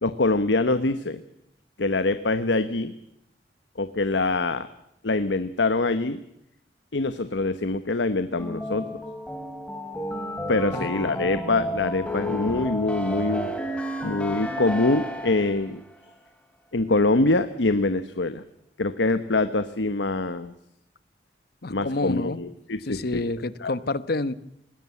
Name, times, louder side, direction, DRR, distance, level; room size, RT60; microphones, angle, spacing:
voice 1, 0.0-1.2 1.8-2.9 3.8-4.7 5.0-6.2 6.9-9.0 10.5-13.5 14.0-15.8 16.7-18.4 18.8-20.5 21.7-23.7, left 2 dB, 85° left, 11 dB, 1.1 m, -24 dB
sound 1, 8.4-15.7, equal, 5° left, 2.8 m, -32 dB
voice 2, 10.7-11.3 21.6-22.4 22.9-24.3, left 2 dB, 60° left, 15 dB, 1.0 m, -29 dB
21.0 x 17.0 x 8.4 m, 0.80 s
head